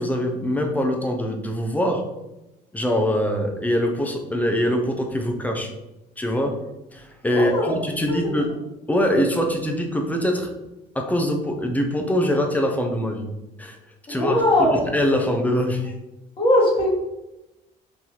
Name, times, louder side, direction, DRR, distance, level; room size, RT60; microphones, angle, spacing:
voice 1, 0.0-2.0 2.7-5.7 6.2-6.6 6.9-8.5 8.9-10.5 10.9-13.3 13.6-13.8 14.1-14.4 14.7-15.9, equal, 10° left, 3 dB, 0.5 m, -23 dB
voice 2, 7.3-7.8 14.1-14.8 16.4-16.9, left 1 dB, 30° left, -4 dB, 1.4 m, -19 dB
3.9 x 2.6 x 2.9 m, 0.96 s
cardioid pair, 110°, 17 cm